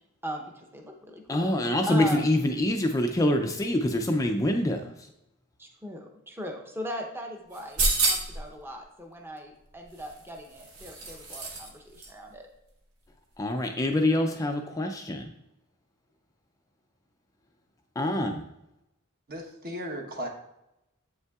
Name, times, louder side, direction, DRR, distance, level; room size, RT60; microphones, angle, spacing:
voice 1, 0.2-2.2 5.6-12.5, equal, 10° right, 2 dB, 0.7 m, -39 dB
voice 2, 1.3-4.9 13.4-15.2 18.0-18.4, left 1 dB, 15° left, 4 dB, 0.3 m, -25 dB
sound 1, 7.5-8.4 9.9-11.7 12.0-12.1, right 2 dB, 85° right, 1.3 m, -28 dB
voice 3, 19.3-20.3, equal, 45° right, 2 dB, 0.9 m, -36 dB
7.9 x 5.4 x 2.3 m, 0.87 s
head